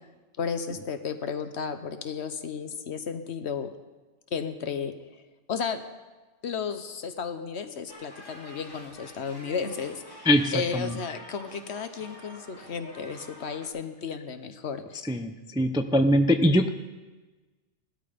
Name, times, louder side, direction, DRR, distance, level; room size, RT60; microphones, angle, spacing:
voice 1, 0.4-3.7 4.3-5.2 5.5-5.8 6.4-15.0, left 6 dB, 65° left, 9 dB, 1.2 m, -33 dB
sound 1, 7.9-13.7, equal, 20° left, 3.0 m, -48 dB
voice 2, 10.3-10.9 15.1-16.7, equal, 5° right, 8 dB, 0.4 m, -22 dB
17.0 x 13.0 x 5.1 m, 1.2 s
omnidirectional pair, 1.2 m